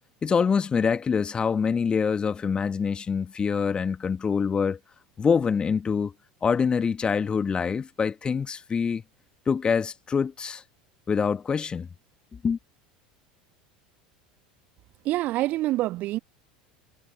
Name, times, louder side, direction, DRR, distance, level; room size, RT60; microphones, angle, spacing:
voice 1, 0.2-4.8 5.2-6.1 6.4-9.0 9.5-10.6 11.1-11.9 12.4-12.6, left 6 dB, 25° left, 1.3 m, -25 dB
voice 2, 15.0-16.2, right 16 dB, 45° right, 1.5 m, -26 dB
figure-of-eight pair, 75°, 4 cm